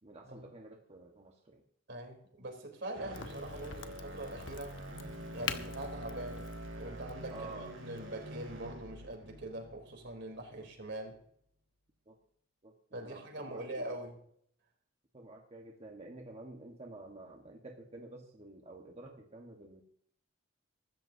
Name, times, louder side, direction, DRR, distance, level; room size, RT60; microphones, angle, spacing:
voice 1, 0.0-1.6 7.3-7.7 12.1-12.2 12.6-13.9 15.1-19.8, right 2 dB, 35° right, 1.5 m, -50 dB
voice 2, 1.9-4.8 5.3-6.5 6.8-11.2 12.9-14.2, right 1 dB, 65° right, 3.6 m, -43 dB
sound 1, 2.9-11.1, right 1 dB, 85° right, 4.6 m, -46 dB
Crack, 3.1-8.6, left 7 dB, 70° left, 1.1 m, -45 dB
23.5 x 13.0 x 2.8 m
head